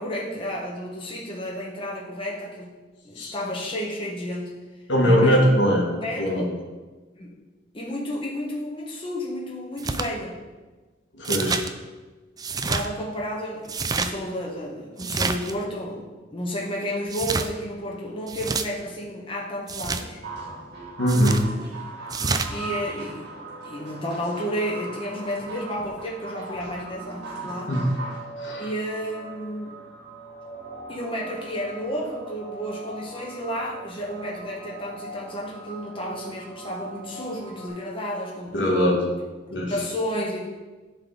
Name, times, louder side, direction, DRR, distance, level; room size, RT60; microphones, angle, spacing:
voice 1, 0.0-4.6 5.0-5.5 5.9-6.5 7.1-7.4 7.7-10.5 12.6-16.0 16.3-20.2 21.6-21.9 22.5-23.3 23.6-27.8 28.6-29.8 30.9-38.8 39.7-40.5, equal, 30° left, -3 dB, 1.1 m, -32 dB
voice 2, 4.9-5.8 6.2-6.4 11.2-11.6 21.0-21.4 27.7-27.8 28.4-28.7 38.5-39.0 39.5-39.7, equal, 75° left, -2 dB, 1.7 m, -20 dB
sound 1, 9.8-10.1 11.2-11.7 12.4-12.9 13.6-14.1 15.0-15.5 17.1-17.5 18.3-18.7 19.7-20.0 21.1-21.4 22.1-22.5, right 4 dB, 20° right, 0.4 m, -27 dB
sound 2, 20.2-28.2, right 2 dB, 65° right, 2.2 m, -39 dB
sound 3, 21.9-37.7, right 3 dB, 5° right, 1.9 m, -42 dB
11.0 x 4.1 x 4.0 m, 1.3 s
head